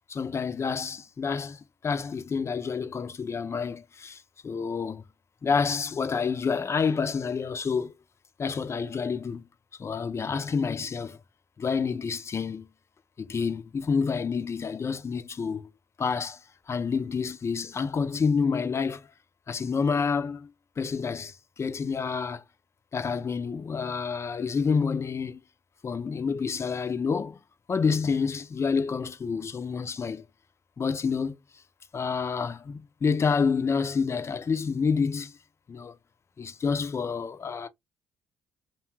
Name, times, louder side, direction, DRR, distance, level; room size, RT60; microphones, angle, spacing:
voice 1, 0.1-5.0 5.4-7.9 8.4-9.4 9.8-11.2 11.6-12.7 13.2-15.7 16.0-16.4 16.7-19.1 19.5-22.4 22.9-25.4 25.8-27.4 27.7-30.2 30.8-31.4 31.9-35.4 35.7-35.9 36.4-37.7, left 5 dB, 35° left, 0.6 m, -28 dB
2.7 x 2.2 x 3.1 m
hypercardioid pair, 55°, 8 cm